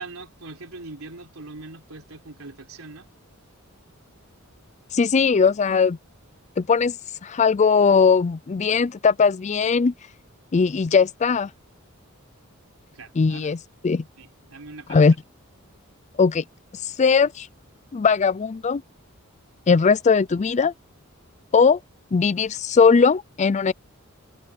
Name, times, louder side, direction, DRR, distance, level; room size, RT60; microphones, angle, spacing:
voice 1, 0.0-3.1 12.9-13.5 14.2-15.1, right 3 dB, 75° right, 4.2 m, -41 dB
voice 2, 4.9-6.0 6.6-6.9 7.2-9.9 10.5-11.5 13.2-14.0 14.9-15.1 16.2-16.4 17.0-17.5 17.9-18.8 19.7-20.7 21.5-21.8 22.1-23.7, left 5 dB, 35° left, 0.4 m, -19 dB
head